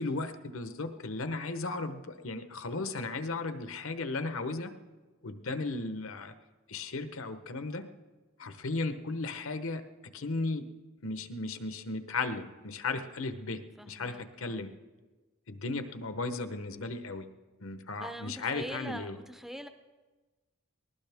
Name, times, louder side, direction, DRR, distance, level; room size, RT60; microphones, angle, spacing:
voice 1, 0.0-4.8 5.2-6.3 6.7-7.9 8.4-9.8 10.1-10.7 11.0-14.7 15.5-17.3 17.6-19.2, left 3 dB, 70° left, 9 dB, 1.0 m, -35 dB
voice 2, 13.8-14.6 18.0-19.7, equal, ahead, 8 dB, 0.5 m, -43 dB
20.0 x 18.0 x 3.5 m, 1.3 s
head